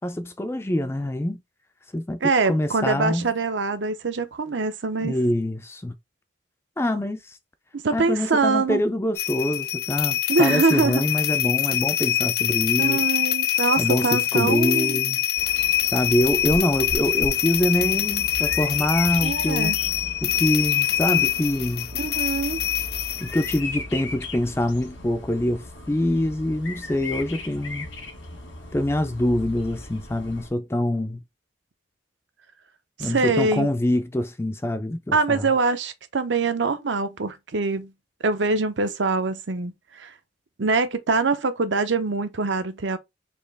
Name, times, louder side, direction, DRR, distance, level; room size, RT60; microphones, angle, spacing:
voice 1, 0.0-1.4 1.9-2.2 2.5-3.3 5.0-6.0 6.8-7.4 7.9-13.0 13.8-15.2 15.9-19.7 20.2-21.9 23.2-27.9 28.7-31.2 33.0-35.5, left 1 dB, 15° left, 0.3 m, -25 dB
voice 2, 2.2-5.2 7.7-8.8 10.3-11.0 12.8-15.0 19.2-19.8 21.9-22.6 33.0-33.7 35.1-37.9 38.2-40.1 40.6-43.0, right 3 dB, 70° right, 0.7 m, -24 dB
sound 1, 9.2-23.6, left 12 dB, 55° left, 0.6 m, -24 dB
Bird vocalization bird call bird song, 15.4-30.5, left 2 dB, 80° left, 1.5 m, -37 dB
4.3 x 2.9 x 3.4 m
head